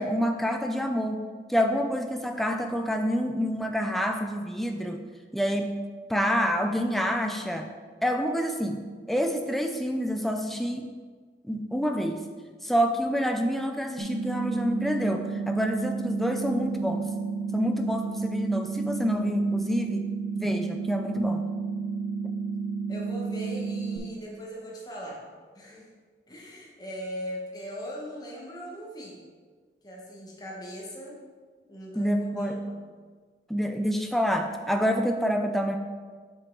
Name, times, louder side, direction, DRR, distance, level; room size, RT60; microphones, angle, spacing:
voice 1, 0.0-5.0 5.3-5.8 6.1-7.7 8.0-8.8 9.1-10.9 11.4-12.2 12.6-17.1 17.5-20.1 20.4-21.4 32.0-32.6 33.5-35.8, equal, ahead, 4 dB, 0.3 m, -27 dB
voice 2, 7.0-7.4 22.9-25.2 25.5-25.9 26.3-29.2 29.8-31.2 31.7-32.8, equal, 20° left, -3 dB, 1.1 m, -40 dB
sound 1, 14.0-24.0, right 5 dB, 45° right, 0.6 m, -31 dB
5.9 x 5.4 x 3.8 m, 1.5 s
head